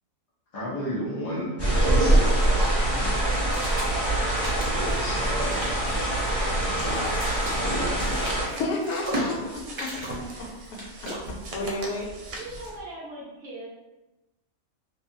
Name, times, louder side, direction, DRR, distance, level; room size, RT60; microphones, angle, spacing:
voice 1, 0.5-3.3 4.7-5.6 6.7-7.3 7.5-8.4, equal, 45° left, -8 dB, 0.4 m, -34 dB
sound 1, 1.6-8.5, right 1 dB, 20° left, 1.3 m, -24 dB
sound 2, 1.7-12.8, equal, 35° right, 0.4 m, -38 dB
sound 3, 6.9-12.8, right 2 dB, 90° right, 1.1 m, -43 dB
voice 2, 8.5-12.1, left 2 dB, 80° left, -1 dB, 1.1 m, -32 dB
voice 3, 12.4-13.7, right 2 dB, 65° right, -4 dB, 0.9 m, -39 dB
2.7 x 2.3 x 2.5 m, 0.99 s
omnidirectional pair, 1.5 m